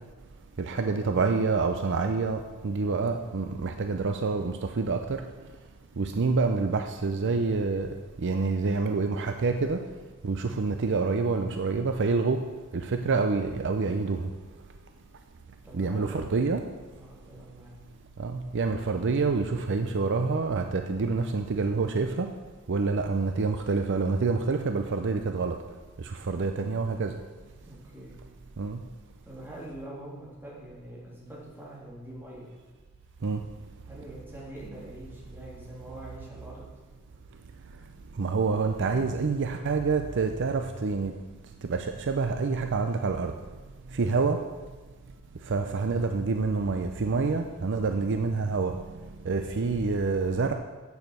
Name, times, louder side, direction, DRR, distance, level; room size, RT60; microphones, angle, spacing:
voice 1, 0.6-5.0 6.0-7.9 8.2-9.8 10.2-12.4 12.7-14.2 15.7-16.6 18.2-22.3 22.7-25.5 26.3-27.1 28.6-28.8 33.2-33.4 38.2-41.1 41.7-43.3 44.0-44.4 45.5-48.7 49.3-50.5, right 4 dB, 55° right, 6 dB, 0.5 m, -27 dB
voice 2, 15.6-16.3 17.0-17.7 27.6-28.2 29.2-32.5 33.8-36.6 44.0-44.2, right 1 dB, 10° right, -6 dB, 3.1 m, -44 dB
8.3 x 7.1 x 6.6 m, 1.3 s
head